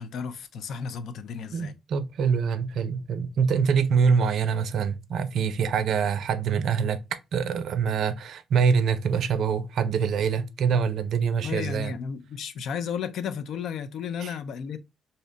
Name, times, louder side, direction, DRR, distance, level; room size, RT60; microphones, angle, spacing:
voice 1, 0.0-1.7 11.4-14.8, left 7 dB, 70° left, 0.4 m, -33 dB
voice 2, 1.5-7.0 7.3-11.9 14.2-14.3, right 6 dB, 70° right, 0.4 m, -25 dB
2.7 x 2.1 x 3.8 m
cardioid pair, 90°, 0 cm